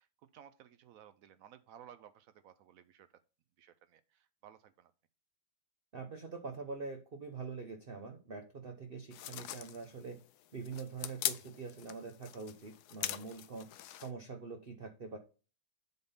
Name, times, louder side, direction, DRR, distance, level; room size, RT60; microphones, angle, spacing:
voice 1, 0.0-3.1 3.6-4.9, right 10 dB, 85° right, 12 dB, 0.7 m, -57 dB
voice 2, 5.9-10.2 10.5-13.7 14.0-15.2, right 4 dB, 45° right, 4 dB, 0.7 m, -44 dB
sound 1, 9.1-14.1, left 12 dB, 75° left, 1.0 m, -42 dB
7.8 x 3.7 x 5.6 m, 0.34 s
omnidirectional pair, 2.0 m